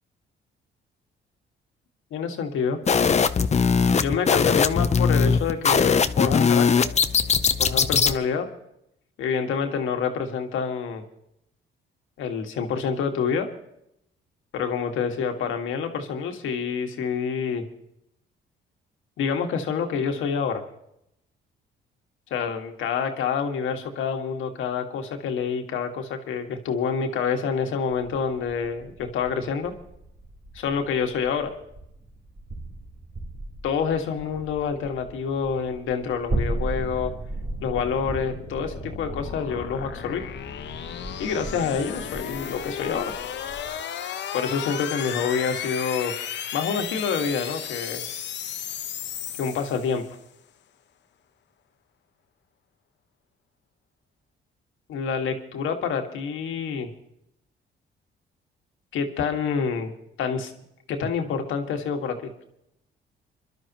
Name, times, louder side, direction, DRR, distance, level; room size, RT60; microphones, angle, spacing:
voice 1, 2.1-2.8 4.0-6.8 7.6-8.5 9.2-11.0 12.2-13.5 14.5-17.7 19.2-20.6 22.3-29.7 30.6-31.5 33.6-37.1 37.6-40.2 41.2-43.1 44.3-46.1 46.5-48.0 49.4-50.0 54.9-56.9 58.9-59.9 60.2-60.5 60.9-62.3, left 6 dB, 80° left, 4 dB, 1.9 m, -27 dB
sound 1, 2.9-8.2, left 6 dB, 35° left, 0.8 m, -20 dB
sound 2, 27.9-43.8, right 2 dB, 35° right, 3.6 m, -37 dB
sound 3, 36.7-50.2, left 9 dB, 65° left, 1.0 m, -35 dB
28.0 x 12.0 x 3.0 m, 0.78 s
cardioid pair, 90°, 20 cm